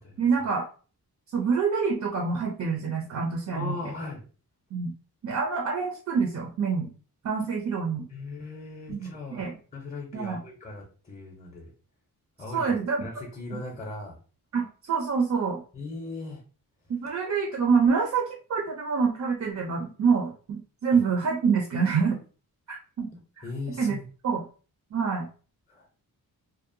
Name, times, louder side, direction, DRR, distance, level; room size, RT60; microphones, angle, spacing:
voice 1, 0.2-0.7 1.3-3.8 4.7-4.9 5.2-6.9 7.2-8.1 8.9-9.5 10.1-10.4 12.5-13.0 14.5-15.6 16.9-22.2 22.7-23.1 23.4-23.5 23.8-24.0 24.2-24.4 24.9-25.3, right 5 dB, 50° right, 1 dB, 0.4 m, -26 dB
voice 2, 3.5-4.2 8.1-11.7 12.4-14.2 15.7-16.4 20.9-21.0 23.4-24.0 25.7-25.9, left 2 dB, 20° left, -1 dB, 0.5 m, -38 dB
2.6 x 2.0 x 2.5 m, 0.37 s
wide cardioid pair, 180°, 38 cm